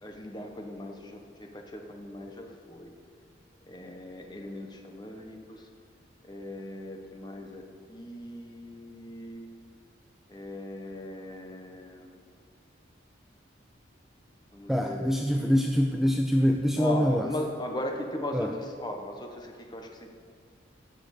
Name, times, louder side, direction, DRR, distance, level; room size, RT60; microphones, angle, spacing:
voice 1, 0.0-2.9 3.7-5.7 6.2-9.5 10.3-12.3 14.5-15.7 16.8-20.1, left 1 dB, 20° left, 3 dB, 1.3 m, -38 dB
voice 2, 14.7-17.3 18.3-18.6, equal, ahead, 3 dB, 0.4 m, -25 dB
17.0 x 6.3 x 6.6 m, 2.1 s
head